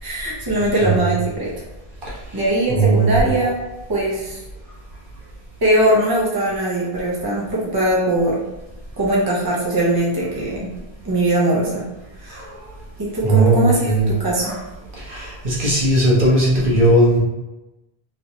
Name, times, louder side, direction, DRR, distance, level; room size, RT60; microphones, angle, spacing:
voice 1, 0.0-1.5 2.3-3.6 3.9-4.4 5.6-8.4 9.0-10.7 11.0-11.8 12.2-12.4 13.0-14.6, right 1 dB, 25° right, -5 dB, 0.8 m, -20 dB
voice 2, 2.7-3.3 12.3-12.5 13.2-14.1 14.4-14.6 15.0-17.2, right 2 dB, 55° right, -6 dB, 1.0 m, -17 dB
3.1 x 3.0 x 2.7 m, 1.0 s
omnidirectional pair, 1.0 m